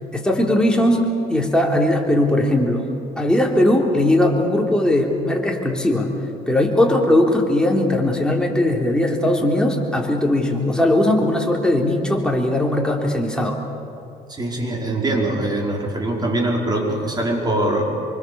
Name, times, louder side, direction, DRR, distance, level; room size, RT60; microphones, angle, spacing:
voice 1, 0.1-2.9 3.2-6.1 6.5-13.6, left 1 dB, 5° left, 0 dB, 3.5 m, -19 dB
voice 2, 14.3-17.8, right 1 dB, 25° right, 0 dB, 5.0 m, -22 dB
25.5 x 24.0 x 7.1 m, 2.6 s
cardioid pair, 110°, 17 cm